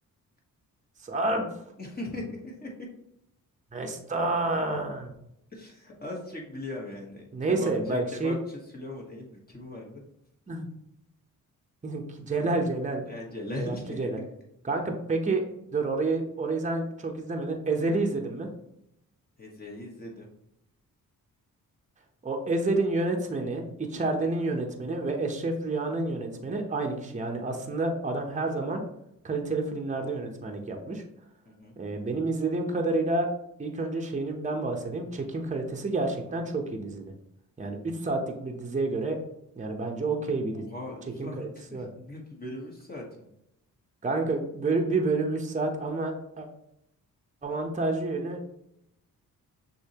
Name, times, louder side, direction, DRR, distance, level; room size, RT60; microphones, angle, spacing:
voice 1, 1.0-1.5 3.7-5.1 7.3-8.3 10.5-10.7 11.8-13.0 13.6-14.2 14.6-15.4 15.7-18.5 22.2-28.8 29.2-31.0 31.8-33.3 33.6-37.1 37.6-39.2 39.6-40.6 41.2-41.9 44.0-46.5 47.4-48.5, right 2 dB, 20° right, 2 dB, 0.8 m, -29 dB
voice 2, 1.8-2.9 5.5-10.0 13.1-14.3 19.4-20.3 31.5-31.8 37.7-38.0 40.5-43.3, left 2 dB, 25° left, -1 dB, 1.2 m, -39 dB
6.4 x 2.8 x 2.9 m, 0.80 s
cardioid pair, 70°, 35 cm